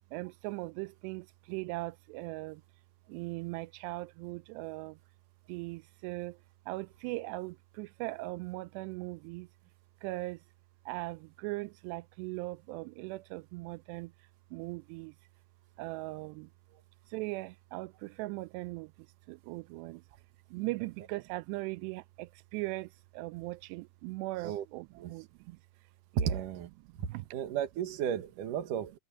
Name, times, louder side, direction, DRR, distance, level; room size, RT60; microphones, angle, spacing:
voice 1, 0.1-2.6 3.1-5.0 5.5-6.4 6.7-9.5 10.0-10.4 10.9-14.1 14.5-15.1 15.8-16.5 17.1-18.9 19.3-20.0 20.5-25.6 26.1-26.4 27.1-27.3, right 22 dB, 90° right, 2.4 m, -39 dB
voice 2, 26.2-26.7 27.0-29.0, right 8 dB, 60° right, 2.5 m, -34 dB
omnidirectional pair, 5.4 m